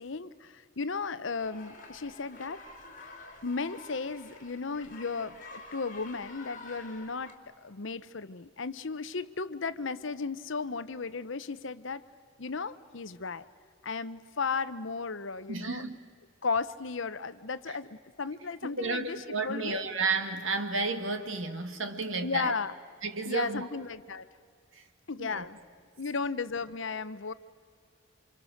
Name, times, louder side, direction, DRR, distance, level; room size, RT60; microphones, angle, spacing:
voice 1, 0.0-2.6 3.4-12.0 12.4-13.5 13.8-15.9 16.4-19.8 22.2-22.7 23.2-24.3 25.1-25.6 26.0-27.3, left 4 dB, 65° left, 14 dB, 0.8 m, -35 dB
sound 1, 1.4-7.3, left 2 dB, 40° left, 3.3 m, -49 dB
voice 2, 15.5-15.9 17.7-17.8 18.6-22.6 23.0-23.7 24.7-24.8 25.2-25.5, right 3 dB, 70° right, 6 dB, 2.1 m, -32 dB
28.5 x 26.5 x 6.4 m, 2.1 s
head